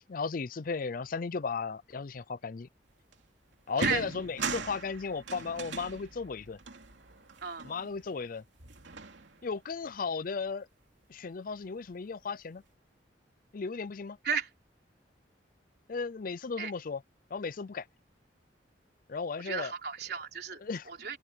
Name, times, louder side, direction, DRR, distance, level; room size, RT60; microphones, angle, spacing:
voice 1, 0.1-2.7 3.7-6.6 7.6-8.4 9.4-10.7 11.1-12.6 13.5-14.2 15.9-17.0 17.3-17.9 19.1-19.7 20.6-20.9, left 4 dB, 50° left, 0.5 m, -35 dB
sound 1, 3.1-3.2 3.7-8.3 8.6-9.6, right 3 dB, 80° right, 2.9 m, -40 dB
voice 2, 19.4-20.6 20.9-21.2, right 5 dB, 60° right, 3.8 m, -33 dB
open air
head